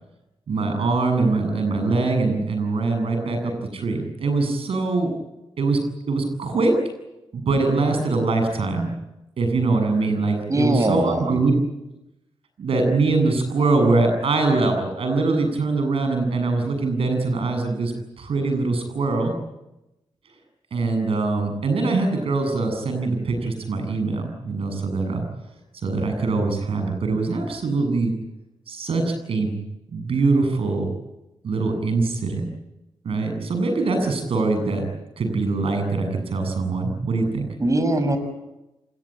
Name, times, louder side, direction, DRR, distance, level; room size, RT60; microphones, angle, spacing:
voice 1, 0.5-5.1 5.6-5.8 6.1-6.8 7.3-8.9 9.4-11.5 12.6-19.3 20.7-25.2 25.8-28.1 28.7-29.6 29.9-30.9 31.4-32.5 33.0-34.9 35.2-37.5, right 3 dB, 70° right, 6 dB, 7.7 m, -23 dB
voice 2, 10.5-11.4 37.6-38.2, right 1 dB, 35° right, 9 dB, 6.6 m, -21 dB
26.0 x 21.5 x 8.9 m, 0.97 s
cardioid pair, 55°, 10 cm